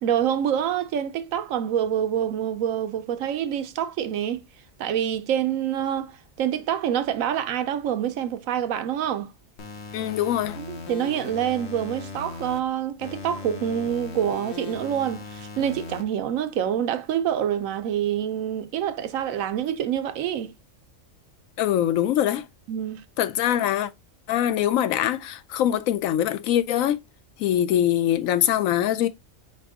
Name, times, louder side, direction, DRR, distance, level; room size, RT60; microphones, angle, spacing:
voice 1, 0.0-4.4 4.8-6.1 6.4-9.3 10.6-20.5 22.7-23.0, right 9 dB, 80° right, 1.0 m, -26 dB
sound 1, 9.6-12.6 13.0-16.0, left 4 dB, 60° left, 1.1 m, -38 dB
voice 2, 9.9-10.6 21.6-22.4 23.2-23.9 24.3-27.0 27.4-29.1, left 11 dB, 80° left, 1.0 m, -23 dB
5.3 x 2.7 x 3.5 m
omnidirectional pair, 1.4 m